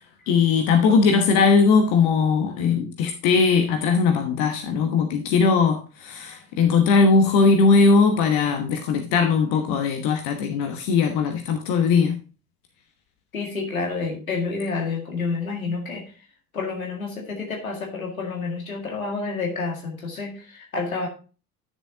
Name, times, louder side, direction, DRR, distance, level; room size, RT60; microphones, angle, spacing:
voice 1, 0.3-12.2, left 4 dB, 55° left, 1.2 m, -19 dB
voice 2, 13.3-16.0 16.5-21.1, left 4 dB, 80° left, 2.1 m, -29 dB
11.0 x 6.7 x 2.8 m
figure-of-eight pair, 60°, 41 cm